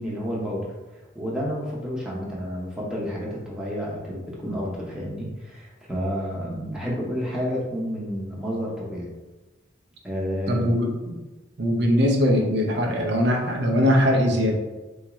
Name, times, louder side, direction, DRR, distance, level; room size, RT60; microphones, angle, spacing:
voice 1, 0.0-9.1 10.0-10.7, equal, 5° right, -5 dB, 0.7 m, -30 dB
voice 2, 10.5-11.2 11.6-14.6, equal, 55° right, 0 dB, 0.7 m, -21 dB
4.0 x 2.4 x 3.0 m, 1.1 s
head